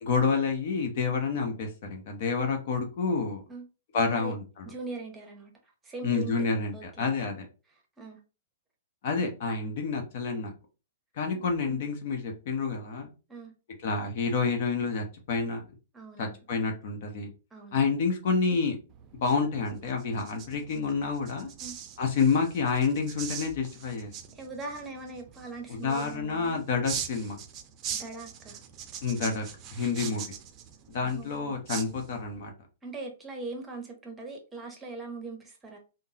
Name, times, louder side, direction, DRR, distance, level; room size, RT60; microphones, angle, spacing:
voice 1, 0.0-3.4 3.9-4.6 6.0-7.5 9.0-10.5 11.2-13.1 13.8-15.6 16.2-17.3 17.7-18.8 19.1-21.5 22.0-24.1 25.7-27.4 29.0-29.4 29.7-30.3 30.9-32.5, left 5 dB, 55° left, 0.9 m, -28 dB
voice 2, 4.6-5.5 5.8-6.3 6.7-7.1 7.7-8.2 11.3-11.9 13.3-13.5 15.9-16.4 17.5-17.9 21.6-21.8 24.3-26.6 27.9-28.6 31.0-31.5 32.8-35.8, right 3 dB, 15° right, 0.8 m, -41 dB
sound 1, 18.9-32.5, right 8 dB, 30° right, 0.5 m, -42 dB
3.6 x 2.1 x 2.8 m
hypercardioid pair, 115°, 0 cm